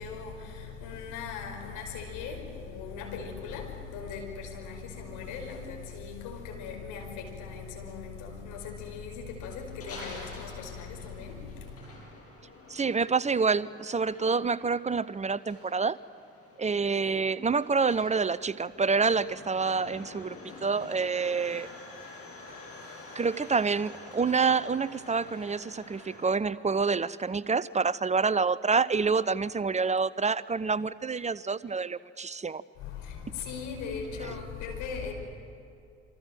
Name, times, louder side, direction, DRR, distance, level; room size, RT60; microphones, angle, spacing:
voice 1, 0.0-11.8 32.8-35.1, left 5 dB, 60° left, 2 dB, 5.4 m, -39 dB
sound 1, 9.4-26.3, left 3 dB, 45° left, 7.8 m, -48 dB
voice 2, 12.7-16.0 16.6-21.7 23.2-32.6, right 5 dB, 20° right, 19 dB, 0.7 m, -27 dB
27.5 x 25.5 x 7.8 m, 2.6 s
figure-of-eight pair, 45°, 34 cm